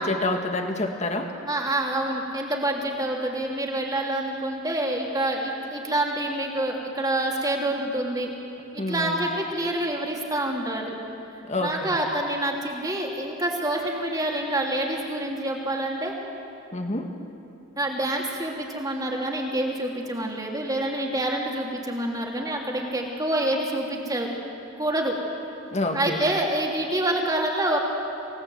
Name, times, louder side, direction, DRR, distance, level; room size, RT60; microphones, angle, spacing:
voice 1, 0.0-1.3 8.8-9.2 11.4-11.9 16.7-17.1 25.7-26.2, left 2 dB, 35° left, 4 dB, 1.8 m, -28 dB
voice 2, 1.4-8.3 8.7-10.9 11.6-16.1 17.8-24.3 24.8-25.2 25.9-27.8, right 1 dB, 20° right, -1 dB, 3.1 m, -27 dB
27.5 x 18.0 x 8.0 m, 2.8 s
head